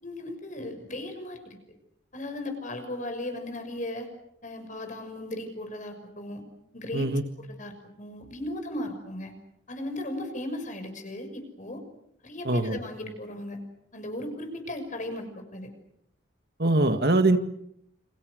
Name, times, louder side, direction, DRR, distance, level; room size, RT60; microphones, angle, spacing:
voice 1, 0.0-1.6 2.1-4.1 4.4-6.4 6.7-7.1 7.4-7.7 8.0-9.3 9.7-11.8 12.2-13.6 13.9-15.7, left 1 dB, 45° left, 6 dB, 6.4 m, -36 dB
voice 2, 12.5-12.8 16.6-17.4, right 2 dB, 60° right, 8 dB, 2.0 m, -22 dB
29.5 x 28.0 x 6.6 m, 0.76 s
head